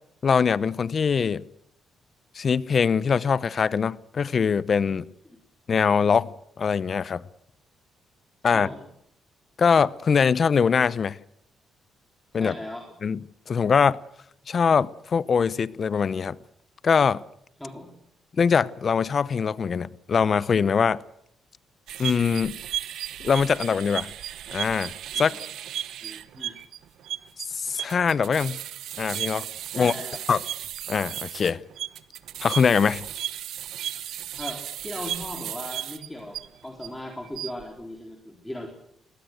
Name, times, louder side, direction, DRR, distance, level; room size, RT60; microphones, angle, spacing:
voice 1, 0.2-1.4 2.3-5.0 5.7-7.2 8.4-8.7 9.6-11.2 12.3-12.5 13.0-13.2 13.5-14.0 14.5-16.4 16.8-17.2 18.4-21.0 22.0-22.6 23.2-24.1 24.5-25.4 27.5-28.6 29.0-29.5 29.7-29.9 30.3-30.4 30.9-31.6 32.4-33.0, left 6 dB, 45° left, 0.8 m, -22 dB
voice 2, 8.5-8.8 12.3-12.9 17.6-18.0 25.1-25.4 26.0-26.6 29.7-30.3 34.4-38.7, left 1 dB, 10° left, 3.7 m, -38 dB
sound 1, 21.9-36.9 37.2-37.6, right 11 dB, 80° right, 0.9 m, -35 dB
21.0 x 18.5 x 7.9 m
cardioid pair, 90°, 0 cm